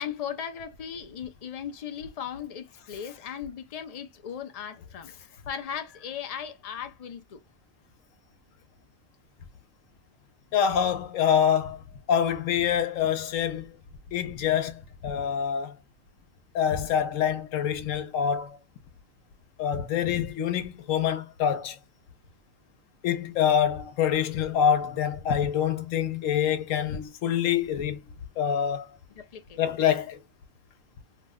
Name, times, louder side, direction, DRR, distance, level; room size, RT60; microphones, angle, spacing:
voice 1, 0.0-5.1 5.5-7.4 29.2-29.6, left 8 dB, 65° left, 0.3 m, -37 dB
voice 2, 10.5-13.8 14.1-15.8 16.5-18.6 19.6-21.8 23.0-28.0 28.4-28.9 29.6-30.2, left 8 dB, 85° left, 1.0 m, -26 dB
2.9 x 2.1 x 3.4 m
omnidirectional pair, 1.3 m